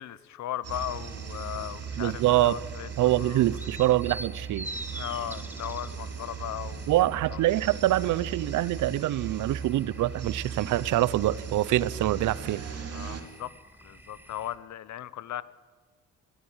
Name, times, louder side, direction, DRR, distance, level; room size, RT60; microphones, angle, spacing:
voice 1, 0.0-3.5 4.9-6.9 7.3-7.7 12.9-13.5 13.8-15.4, left 12 dB, 70° left, 1.0 m, -37 dB
sound 1, 0.6-13.2, right 6 dB, 55° right, 3.2 m, -38 dB
sound 2, 0.7-14.6, right 1 dB, 5° right, 2.0 m, -47 dB
voice 2, 2.0-2.6 3.0-4.7 6.9-12.6, right 15 dB, 80° right, 0.8 m, -25 dB
21.0 x 17.0 x 8.9 m
cardioid pair, 90°, 30 cm